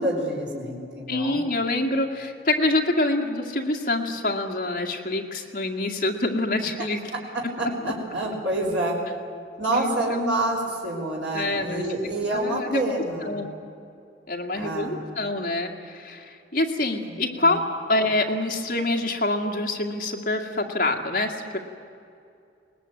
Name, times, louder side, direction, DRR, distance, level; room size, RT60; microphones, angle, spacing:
voice 1, 0.0-1.4 7.1-9.0 9.6-13.4 14.5-15.0 17.1-17.6, right 1 dB, 75° right, -2 dB, 4.3 m, -28 dB
voice 2, 1.1-7.0 9.7-10.2 11.3-11.9 12.3-12.8 13.2-13.5 14.3-21.6, left 2 dB, 45° left, 2 dB, 2.1 m, -26 dB
21.0 x 19.0 x 9.0 m, 2.5 s
head